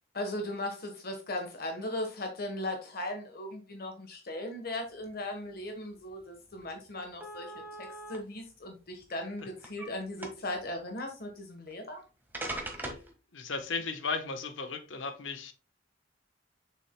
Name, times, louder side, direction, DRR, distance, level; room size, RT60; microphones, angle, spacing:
voice 1, 0.1-7.5 7.8-12.0, left 1 dB, 55° left, 1.2 m, -38 dB
sound 1, 6.1-6.2 6.5-6.6 7.2-8.2 9.0-9.9 10.2-10.6 11.7-11.8 12.3-13.1, right 1 dB, 10° right, 1.4 m, -40 dB
voice 2, 13.3-15.5, left 4 dB, 85° left, 1.0 m, -35 dB
7.4 x 6.7 x 2.2 m
head